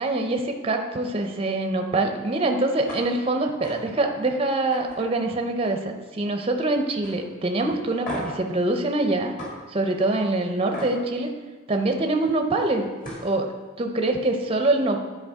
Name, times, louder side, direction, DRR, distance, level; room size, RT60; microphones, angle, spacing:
voice 1, 0.0-9.3 9.7-11.3 11.7-12.9 13.2-13.5 13.8-15.0, right 2 dB, 25° right, 4 dB, 0.5 m, -24 dB
sound 1, 2.9-3.0 3.4-3.7 4.1-4.3 4.7-5.9 6.2-6.6 7.0-7.1 8.0-8.4 9.4-9.5 10.7-10.9 12.6-12.7 13.0-13.3, equal, 40° left, 2.1 m, -36 dB
10.5 x 4.8 x 3.5 m, 1.3 s
head